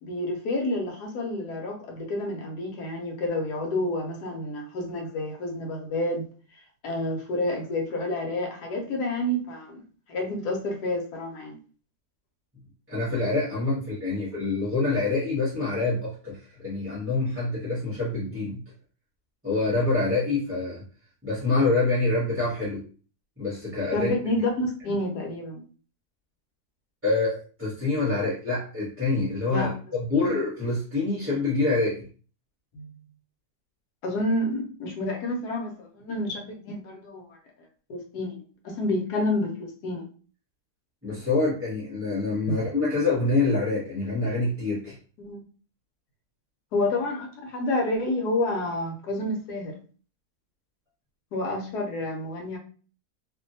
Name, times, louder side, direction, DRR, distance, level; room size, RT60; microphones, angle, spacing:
voice 1, 0.0-6.2 6.8-11.6 23.9-25.6 29.5-29.7 32.7-32.9 34.0-37.3 37.9-38.4 38.6-40.1 42.5-42.6 45.2-45.4 46.7-49.7 51.3-52.6, left 1 dB, 85° left, 1.3 m, -29 dB
voice 2, 12.9-18.6 19.4-20.8 21.2-22.8 23.4-24.1 27.0-32.1 41.0-44.9, left 3 dB, 10° right, 0.7 m, -26 dB
2.7 x 2.6 x 2.6 m
omnidirectional pair, 1.7 m